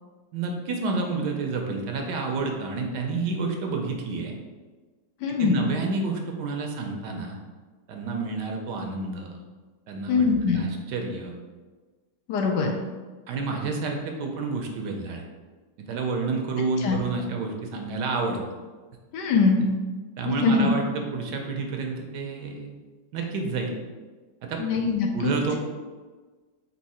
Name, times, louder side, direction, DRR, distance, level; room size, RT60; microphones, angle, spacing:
voice 1, 0.3-4.3 5.3-7.4 7.9-9.4 9.9-10.2 10.5-11.4 13.3-15.2 15.8-18.4 20.2-22.7 23.1-23.7 24.4-24.6 25.1-25.6, right 3 dB, 75° right, 2 dB, 1.2 m, -29 dB
voice 2, 5.2-5.7 10.1-10.6 12.3-12.8 16.8-17.0 19.1-19.7 20.2-20.7 24.6-25.3, left 4 dB, 75° left, 2 dB, 1.1 m, -22 dB
4.6 x 2.7 x 4.2 m, 1.3 s
omnidirectional pair, 2.0 m